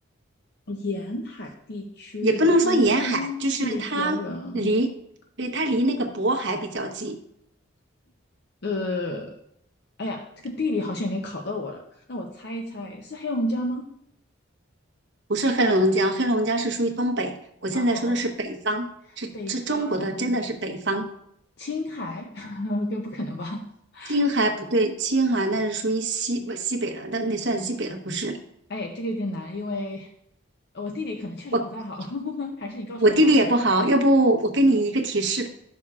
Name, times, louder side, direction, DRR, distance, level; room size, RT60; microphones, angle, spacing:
voice 1, 0.7-4.7 8.6-9.4 10.0-11.8 12.1-13.9 17.7-18.2 19.3-20.2 21.6-23.6 23.9-24.2 28.7-30.1 30.7-33.4, left 2 dB, 50° left, 3 dB, 0.6 m, -31 dB
voice 2, 2.2-4.2 4.5-4.9 5.4-7.1 15.3-17.3 17.6-18.9 19.2-21.1 24.1-28.4 31.5-31.6 33.0-35.5, right 1 dB, 60° right, 3 dB, 1.0 m, -23 dB
12.0 x 6.2 x 2.4 m, 0.74 s
head